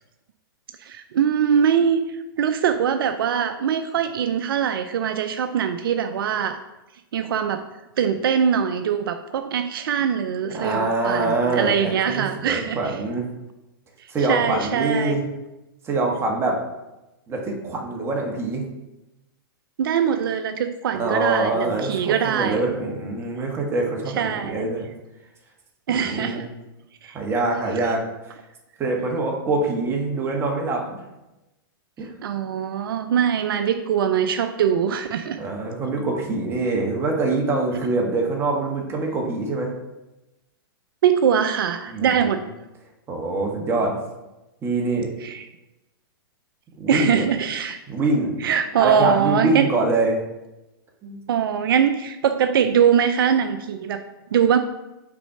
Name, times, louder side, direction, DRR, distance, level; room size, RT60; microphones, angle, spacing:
voice 1, 0.8-6.6 7.1-7.6 8.0-13.0 14.0-15.2 19.8-22.6 24.2-24.7 25.9-26.5 27.0-27.2 32.2-35.4 41.0-42.4 45.2-45.4 46.9-47.8 48.4-49.7 51.3-54.0 54.3-54.6, right 8 dB, 70° right, 8 dB, 0.5 m, -22 dB
voice 2, 10.4-13.3 14.1-15.2 15.8-16.6 17.3-18.6 20.9-24.9 25.9-26.4 27.1-28.0 28.8-30.9 32.0-32.1 35.4-39.7 41.9-42.3 43.1-44.0 44.6-45.1 46.8-47.2 47.9-48.4 48.8-50.2 51.0-51.2, right 2 dB, 20° right, 0 dB, 1.4 m, -24 dB
6.1 x 4.2 x 5.6 m, 1.0 s
hypercardioid pair, 135°, 12 cm